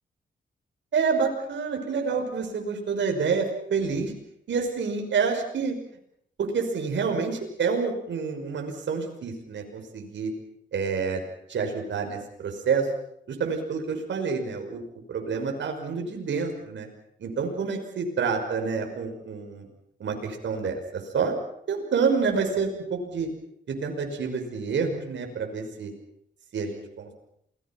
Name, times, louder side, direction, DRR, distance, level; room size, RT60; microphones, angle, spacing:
voice 1, 0.9-4.1 4.5-5.8 6.4-10.3 10.7-11.2 11.5-12.9 13.3-14.8 15.1-16.9 17.2-19.7 20.0-21.4 21.7-23.3 23.7-25.9 26.5-27.1, right 5 dB, 75° right, 3 dB, 5.7 m, -28 dB
28.0 x 20.5 x 6.0 m, 0.72 s
cardioid pair, 75°, 19 cm